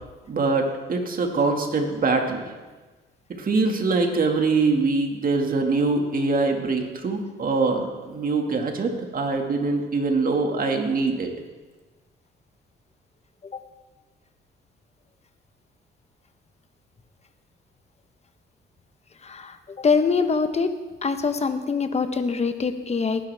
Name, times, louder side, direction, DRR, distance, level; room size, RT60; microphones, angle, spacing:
voice 1, 0.3-2.4 3.3-11.3, right 3 dB, 45° right, 3 dB, 2.1 m, -23 dB
voice 2, 19.2-20.7 21.0-23.3, left 5 dB, 35° left, 9 dB, 1.1 m, -24 dB
19.0 x 11.0 x 3.5 m, 1.2 s
cardioid pair, 90°, 20 cm